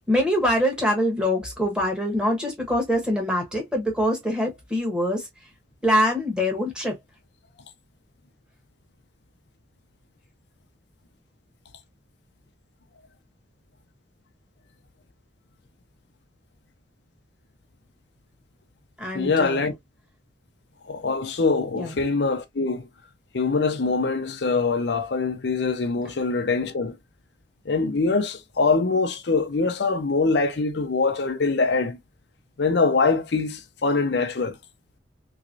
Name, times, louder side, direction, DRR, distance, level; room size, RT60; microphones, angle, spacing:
voice 1, 0.1-5.3 5.8-7.0 19.0-19.6 21.7-21.9, equal, 5° right, 1.3 m, -24 dB
voice 2, 19.1-19.7 20.9-22.9 23.3-27.0 27.7-32.0 32.6-34.6, left 4 dB, 65° left, 0.6 m, -23 dB
3.4 x 3.0 x 2.6 m
head